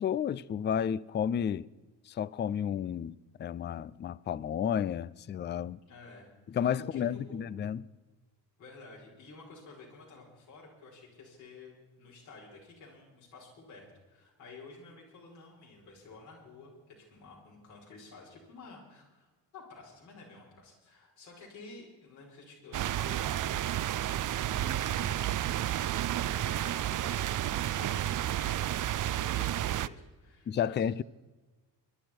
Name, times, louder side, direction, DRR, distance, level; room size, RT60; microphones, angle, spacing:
voice 1, 0.0-1.7 2.1-5.8 6.5-7.8 30.5-31.0, left 8 dB, 25° left, 0.4 m, -32 dB
voice 2, 5.9-7.4 8.6-25.2 25.6-30.9, left 3 dB, 80° left, 5.3 m, -52 dB
sound 1, 22.7-29.9, right 12 dB, 40° right, 0.6 m, -31 dB
24.0 x 12.0 x 4.5 m
hypercardioid pair, 45°, 50 cm